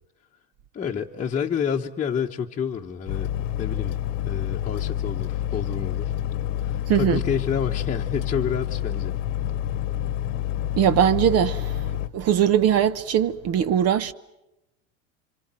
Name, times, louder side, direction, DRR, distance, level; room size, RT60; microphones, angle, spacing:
voice 1, 0.7-3.3 3.6-4.0 4.2-6.1 6.6-9.1, left 7 dB, 20° left, 1.1 m, -29 dB
sound 1, 3.1-12.1, left 12 dB, 80° left, 1.3 m, -28 dB
voice 2, 6.9-7.2 10.8-11.9 12.1-14.1, right 9 dB, 40° right, 1.0 m, -21 dB
26.5 x 26.0 x 7.7 m
supercardioid pair, 120°, 37 cm